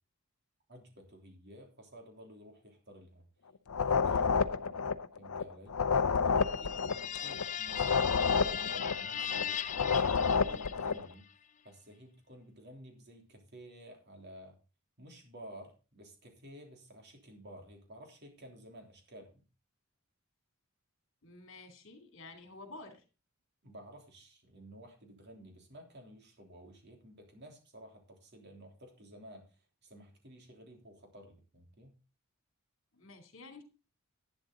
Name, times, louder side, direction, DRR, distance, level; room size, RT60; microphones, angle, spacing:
voice 1, 0.7-3.2 3.8-4.6 5.2-5.8 6.2-11.2 11.6-14.6 15.0-19.4 23.6-31.9, equal, 50° right, 2 dB, 3.2 m, -53 dB
sound 1, 3.7-11.1, left 5 dB, 85° left, 0.6 m, -30 dB
sound 2, 6.4-11.1, left 9 dB, 35° left, 0.5 m, -38 dB
voice 2, 21.2-23.0 32.9-33.6, left 2 dB, 55° left, 4 dB, 2.8 m, -50 dB
11.5 x 9.7 x 3.8 m, 0.33 s
head